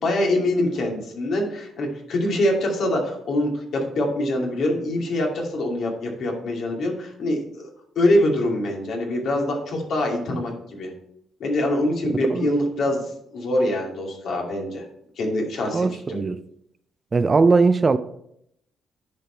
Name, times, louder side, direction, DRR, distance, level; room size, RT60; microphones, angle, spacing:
voice 1, 0.0-7.7 8.0-10.9 11.4-13.1 13.3-14.8 15.2-16.2, left 1 dB, 65° left, 2.5 m, -24 dB
voice 2, 12.1-12.5 15.7-16.4 17.1-18.0, right 4 dB, 35° right, 0.5 m, -19 dB
10.0 x 5.0 x 4.5 m
cardioid pair, 90°, 0 cm